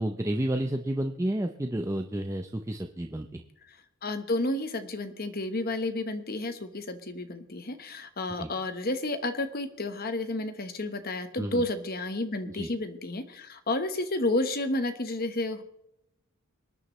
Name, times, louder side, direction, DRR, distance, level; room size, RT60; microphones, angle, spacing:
voice 1, 0.0-3.4 8.4-8.5 11.4-11.6 12.5-12.7, right 1 dB, 15° right, 5 dB, 0.5 m, -31 dB
voice 2, 3.7-15.6, left 2 dB, 45° left, 9 dB, 1.1 m, -31 dB
25.5 x 9.7 x 3.1 m, 0.85 s
head